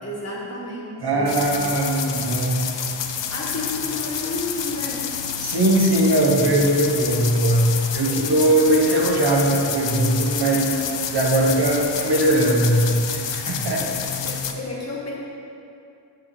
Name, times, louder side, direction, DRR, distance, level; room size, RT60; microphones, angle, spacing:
voice 1, 0.0-1.5 3.3-5.1 13.7-15.1, left 2 dB, 35° left, -4 dB, 1.6 m, -32 dB
voice 2, 1.0-2.9 5.4-13.9, right 1 dB, 60° right, -1 dB, 1.1 m, -20 dB
sound 1, 1.3-14.5, left 7 dB, 80° left, 0.6 m, -29 dB
6.9 x 6.3 x 4.3 m, 2.6 s
wide cardioid pair, 105°, 43 cm